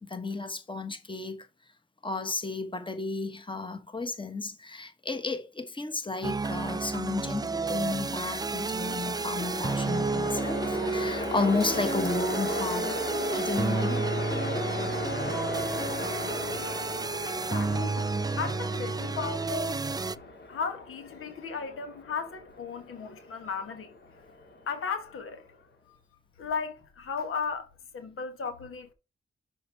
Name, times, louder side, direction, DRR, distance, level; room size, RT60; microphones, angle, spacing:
voice 1, 0.0-1.4 2.0-13.0 13.3-14.1, left 3 dB, 25° left, 1.4 m, -33 dB
sound 1, 6.2-20.2, right 4 dB, 20° right, 0.3 m, -31 dB
Train, 8.1-25.3, left 2 dB, 55° left, 2.1 m, -37 dB
voice 2, 17.3-24.0 24.7-25.5 25.9-26.0 26.4-28.9, left 5 dB, 80° left, 1.3 m, -36 dB
6.4 x 4.4 x 4.6 m
cardioid pair, 50°, 21 cm